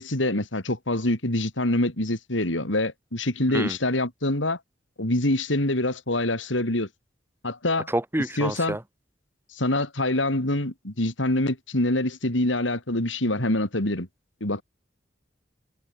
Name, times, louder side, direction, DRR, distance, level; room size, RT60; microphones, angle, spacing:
voice 1, 0.0-4.6 5.0-6.9 7.4-7.9 8.4-8.8 9.5-14.1 14.4-14.6, left 1 dB, 90° left, 4.0 m, -25 dB
voice 2, 7.9-8.8, right 1 dB, 10° right, 1.8 m, -28 dB
head